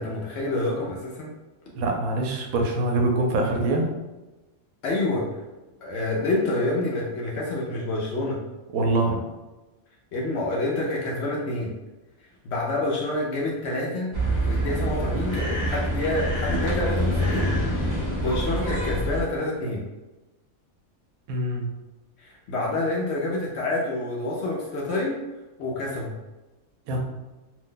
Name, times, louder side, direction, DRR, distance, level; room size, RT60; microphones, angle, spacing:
voice 1, 0.0-1.3 4.8-5.3 5.8-8.4 10.1-11.7 12.4-14.1 14.4-19.8 22.2-25.2 25.6-26.2, left 2 dB, 65° left, -3 dB, 0.7 m, -28 dB
voice 2, 1.8-3.9 8.7-9.2 21.3-21.7 26.9-27.0, right 2 dB, 80° right, 2 dB, 1.0 m, -24 dB
sound 1, 14.1-19.2, equal, 30° right, 0.5 m, -26 dB
2.6 x 2.1 x 3.7 m, 1.1 s
omnidirectional pair, 1.5 m